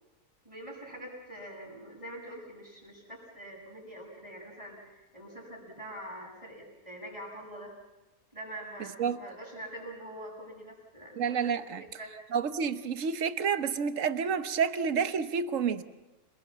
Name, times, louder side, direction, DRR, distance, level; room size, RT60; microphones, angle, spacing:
voice 1, 0.4-7.7 8.3-12.1, right 1 dB, 20° right, 6.9 m, -45 dB
voice 2, 11.2-11.8 12.3-15.8, right 6 dB, 60° right, 1.4 m, -29 dB
28.5 x 21.5 x 7.3 m
omnidirectional pair, 1.5 m